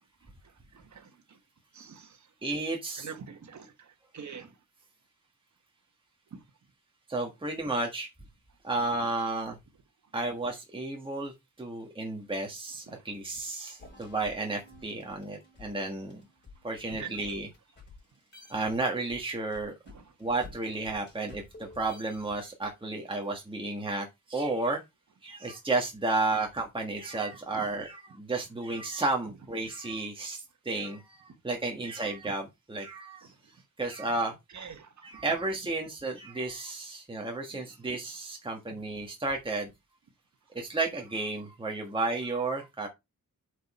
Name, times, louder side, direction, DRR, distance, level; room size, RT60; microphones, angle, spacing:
voice 1, 0.4-1.4 1.7-2.3 3.0-4.5 6.3-6.4 12.9-13.0 17.0-17.1 19.9-20.1 27.5-27.7 33.2-33.3 34.5-35.2, right 6 dB, 55° right, 1.5 m, -46 dB
voice 2, 2.4-3.1 7.1-8.1 8.6-9.6 10.1-11.3 11.6-16.2 16.6-17.5 18.5-19.7 20.2-24.8 25.2-33.3 33.8-34.3 35.0-39.7 40.5-42.9, right 2 dB, 15° right, 1.6 m, -32 dB
sound 1, 13.8-18.0 18.3-22.7, left 3 dB, 30° left, 4.1 m, -51 dB
8.0 x 5.2 x 4.3 m
wide cardioid pair, 180°, 34 cm